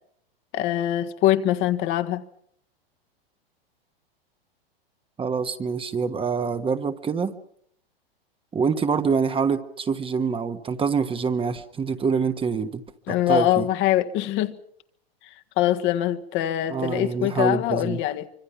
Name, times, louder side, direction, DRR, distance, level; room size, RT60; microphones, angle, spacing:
voice 1, 0.5-2.2 13.1-14.6 15.6-18.3, left 13 dB, 40° left, 1.7 m, -23 dB
voice 2, 5.2-7.3 8.5-12.8 13.1-13.7 16.7-18.0, right 5 dB, 20° right, 1.4 m, -25 dB
25.5 x 25.0 x 5.8 m
hypercardioid pair, 105°, 30 cm